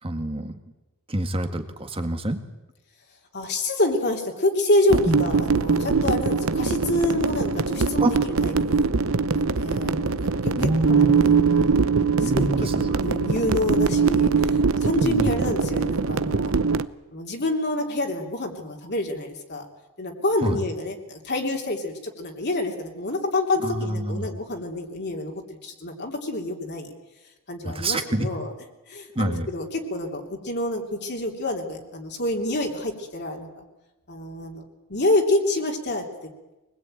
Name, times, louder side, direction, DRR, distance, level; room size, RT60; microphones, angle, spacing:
voice 1, 0.0-0.6 1.1-2.4 5.0-5.3 8.0-8.1 10.6-11.3 12.1-13.0 15.0-15.5 20.4-20.6 23.6-24.3 27.6-28.3 29.1-29.5, right 1 dB, 25° right, 7 dB, 1.8 m, -26 dB
voice 2, 3.3-8.9 9.3-10.1 10.4-11.9 12.2-16.5 17.1-19.7 20.0-26.9 27.5-28.5 28.9-33.6 34.1-36.0, left 2 dB, 50° left, 1 dB, 3.1 m, -27 dB
sound 1, 4.9-16.8, right 5 dB, 65° right, 0.8 m, -22 dB
24.0 x 20.5 x 9.0 m, 1.1 s
head